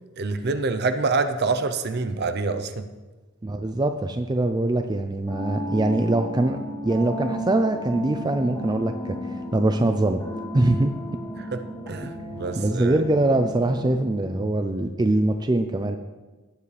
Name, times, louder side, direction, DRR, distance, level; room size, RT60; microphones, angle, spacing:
voice 1, 0.2-2.9 11.5-11.6 11.9-13.0, right 3 dB, 50° right, 9 dB, 0.7 m, -26 dB
voice 2, 3.4-10.2 10.5-10.9 12.6-16.0, right 2 dB, 20° right, 6 dB, 0.4 m, -23 dB
sound 1, 5.3-14.3, equal, 15° left, 3.1 m, -34 dB
18.0 x 7.3 x 3.3 m, 1.2 s
head